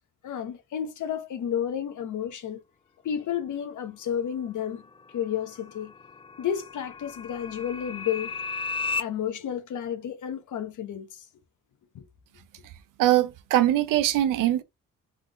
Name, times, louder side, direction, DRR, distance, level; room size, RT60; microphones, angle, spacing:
voice 1, 0.2-2.6 3.0-4.8 5.1-5.9 6.4-8.4 9.0-11.3 11.9-12.1, left 9 dB, 70° left, 1.0 m, -31 dB
sound 1, 4.7-9.0, left 4 dB, 20° left, 0.3 m, -35 dB
voice 2, 13.0-14.6, right 13 dB, 85° right, 0.6 m, -22 dB
3.6 x 3.5 x 3.4 m
cardioid pair, 85°, 31 cm